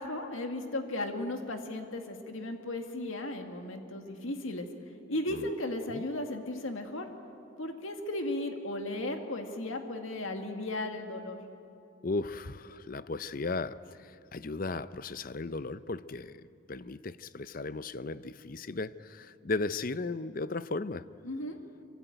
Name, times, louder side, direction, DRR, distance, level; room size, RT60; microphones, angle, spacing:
voice 1, 0.0-4.7 5.1-7.1 7.6-11.4 21.2-21.6, left 1 dB, 85° left, 5 dB, 2.1 m, -35 dB
voice 2, 12.0-16.4 16.7-21.0, left 3 dB, 45° left, 15 dB, 0.6 m, -36 dB
26.0 x 24.0 x 9.3 m, 2.5 s
head